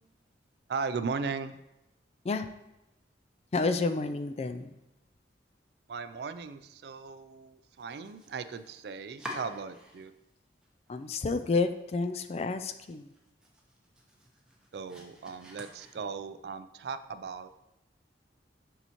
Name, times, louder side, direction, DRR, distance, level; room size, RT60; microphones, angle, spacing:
voice 1, 0.7-1.6 5.9-10.1 14.7-17.5, right 5 dB, 60° right, 12 dB, 0.3 m, -37 dB
voice 2, 3.5-4.7 10.9-13.1, left 3 dB, 35° left, 9 dB, 0.3 m, -30 dB
Domestic sounds home sounds, 7.7-10.3 10.6-11.4 11.7-11.8 12.2-12.3 12.7-16.4, equal, 5° right, 0.8 m, -48 dB
6.8 x 5.7 x 2.9 m, 0.91 s
head